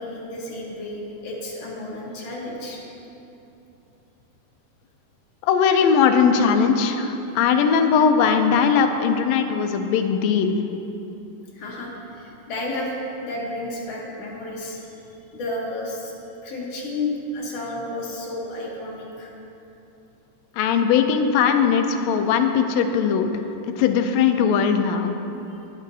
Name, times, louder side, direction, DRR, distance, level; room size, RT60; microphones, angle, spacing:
voice 1, 0.0-2.8 11.5-12.9 13.2-14.8 15.3-16.1 16.4-19.3, left 2 dB, 60° left, -3 dB, 2.0 m, -32 dB
voice 2, 5.4-10.6 20.6-23.3 23.6-25.1, left 6 dB, 80° left, 6 dB, 1.6 m, -19 dB
18.0 x 6.4 x 2.7 m, 3.0 s
omnidirectional pair, 3.5 m